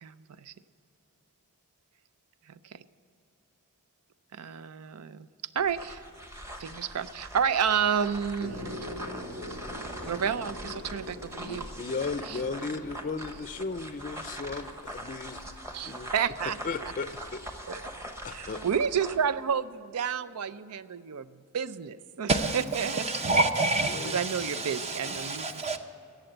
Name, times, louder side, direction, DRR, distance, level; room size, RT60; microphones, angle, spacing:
voice 1, 0.0-0.5 2.5-2.8 4.3-5.3 5.5-6.0 6.6-8.8 10.0-11.7 12.3-12.4 15.7-16.9 17.7-17.9 18.3-22.3 22.5-23.0 24.1-25.6, right 7 dB, 90° right, 15 dB, 0.5 m, -31 dB
sound 1, 5.6-19.3, equal, 15° right, 1.0 m, -42 dB
sound 2, 8.4-14.7, left 1 dB, 70° right, 1.8 m, -43 dB
voice 2, 11.4-15.5 15.8-16.1 16.6-17.4 18.2-18.6 23.9-24.2, left 4 dB, 35° left, 11 dB, 0.4 m, -35 dB
voice 3, 22.3-25.8, right 2 dB, 30° right, 7 dB, 0.7 m, -28 dB
16.5 x 7.0 x 7.8 m, 2.8 s
head